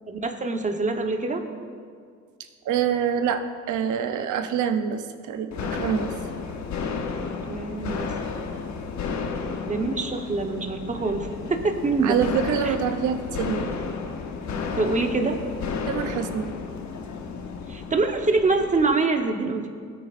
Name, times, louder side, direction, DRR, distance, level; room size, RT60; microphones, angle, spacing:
voice 1, 0.1-1.5 7.5-8.1 9.7-12.2 12.6-12.7 14.7-15.4 17.7-19.7, right 3 dB, 25° right, 5 dB, 1.1 m, -25 dB
voice 2, 2.6-6.1 12.0-13.7 15.9-16.5, right 8 dB, 80° right, 8 dB, 0.8 m, -26 dB
sound 1, 5.5-19.0, left 5 dB, 65° left, 1.1 m, -32 dB
17.5 x 8.7 x 2.6 m, 2.1 s
cardioid pair, 90°, 30 cm